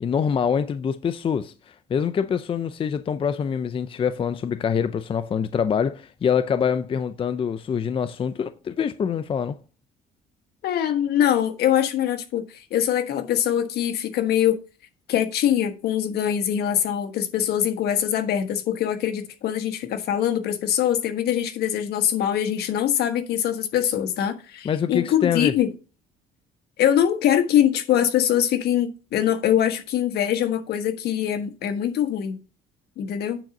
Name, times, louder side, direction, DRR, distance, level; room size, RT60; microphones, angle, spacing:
voice 1, 0.0-9.6 24.6-25.5, left 7 dB, 30° left, 0.5 m, -25 dB
voice 2, 10.6-14.6 15.1-25.7 26.8-32.4 33.0-33.4, left 10 dB, 70° left, 1.4 m, -23 dB
9.0 x 3.9 x 5.9 m
cardioid pair, 110°, 17 cm